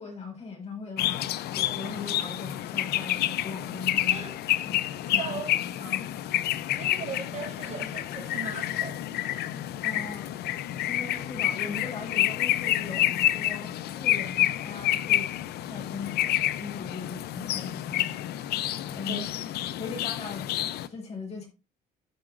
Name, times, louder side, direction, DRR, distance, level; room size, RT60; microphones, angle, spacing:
voice 1, 0.0-4.3 4.6-4.9 5.1-5.4 5.8-6.3 9.8-10.3 10.9-15.3 15.7-16.2 16.6-18.5 18.9-19.2 19.8-20.5 20.9-21.5, left 4 dB, 40° left, 3.9 m, -39 dB
sound 1, 1.0-20.9, left 14 dB, 70° left, 0.6 m, -29 dB
voice 2, 5.1-5.5 6.8-9.1 19.0-19.2, right 6 dB, 45° right, 4.8 m, -38 dB
15.0 x 4.9 x 2.5 m
cardioid pair, 110°, 17 cm